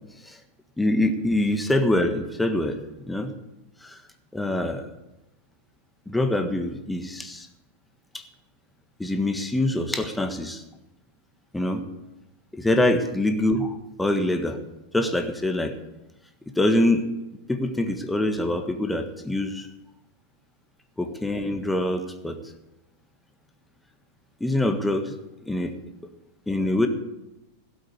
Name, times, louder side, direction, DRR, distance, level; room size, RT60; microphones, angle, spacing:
voice 1, 0.8-2.8 3.1-3.3 3.8-4.0 4.3-4.9 6.1-7.5 9.0-10.6 11.5-11.8 12.5-13.7 14.0-14.6 14.9-15.7 16.6-17.1 17.5-19.7 21.0-22.4 24.4-25.1 25.4-25.7 26.5-26.9, left 1 dB, 5° left, 6 dB, 1.6 m, -24 dB
17.0 x 7.9 x 7.9 m, 0.94 s
figure-of-eight pair, 90°, 0 cm